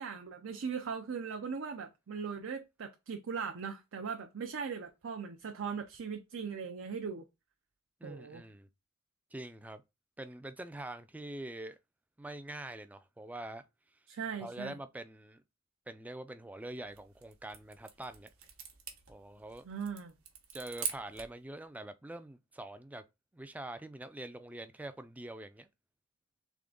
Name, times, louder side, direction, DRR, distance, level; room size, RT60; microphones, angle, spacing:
voice 1, 0.0-7.2 8.0-8.4 14.1-14.7 19.6-20.1, right 6 dB, 60° right, 0.5 m, -39 dB
voice 2, 8.0-8.7 9.3-9.8 10.2-11.8 12.2-13.6 14.4-15.4 15.9-18.3 19.1-19.6 20.5-23.0 23.3-25.7, right 1 dB, 5° right, 0.3 m, -44 dB
sound 1, 16.8-21.4, right 7 dB, 85° right, 1.0 m, -44 dB
3.6 x 3.3 x 3.7 m
head